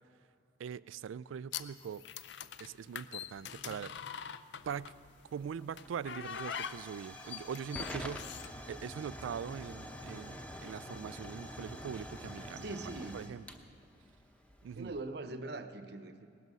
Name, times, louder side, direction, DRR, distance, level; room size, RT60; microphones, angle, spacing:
voice 1, 0.6-2.0 2.6-3.9 4.7-4.9 5.3-12.7 13.1-13.4 14.6-14.9, right 7 dB, 90° right, 20 dB, 0.3 m, -42 dB
sound 1, 1.5-5.1 5.8-8.5, left 8 dB, 65° left, 0.5 m, -43 dB
Hiss / Fire / Tick, 4.6-15.0, equal, 5° left, 0.8 m, -47 dB
voice 2, 12.6-13.4 14.8-16.3, right 2 dB, 55° right, 8 dB, 0.8 m, -42 dB
19.0 x 12.5 x 5.4 m, 2.4 s
head